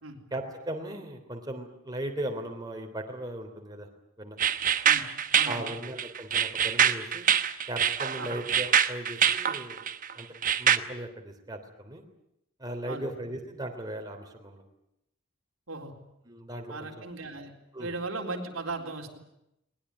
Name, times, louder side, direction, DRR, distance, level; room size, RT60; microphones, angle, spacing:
voice 1, 0.3-3.9 4.2-4.4 5.5-7.3 7.7-9.8 10.2-10.3 10.6-12.0 12.6-14.6 16.3-17.0 17.7-17.9, right 1 dB, 20° right, 2 dB, 3.3 m, -37 dB
sound 1, 4.4-10.8, right 8 dB, 40° right, 1.1 m, -25 dB
voice 2, 5.3-5.7 8.2-8.3 12.9-13.1 15.7-15.9 16.7-17.5 17.8-19.2, right 3 dB, 85° right, 1 dB, 4.0 m, -37 dB
21.0 x 20.5 x 10.0 m, 0.83 s
head